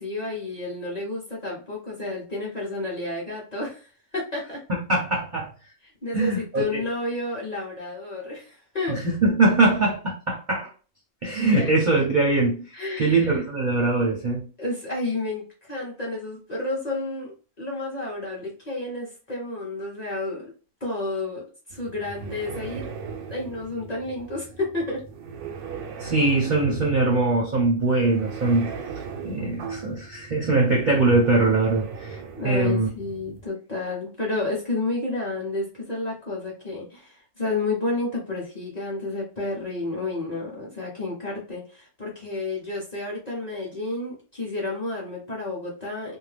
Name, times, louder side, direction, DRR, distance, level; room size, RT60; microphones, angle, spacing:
voice 1, 0.0-4.6 5.8-9.0 11.5-11.7 12.7-13.4 14.6-20.5 20.8-22.8 23.3-25.0 32.4-46.2, left 2 dB, 35° left, 0.9 m, -31 dB
voice 2, 4.9-5.5 6.1-6.8 8.9-10.7 11.2-12.7 13.0-14.4 26.0-28.7 29.2-32.2 32.4-32.9, right 2 dB, 45° right, 0.6 m, -22 dB
sound 1, 21.7-33.5, right 5 dB, 90° right, 1.1 m, -38 dB
2.6 x 2.1 x 3.2 m
omnidirectional pair, 1.5 m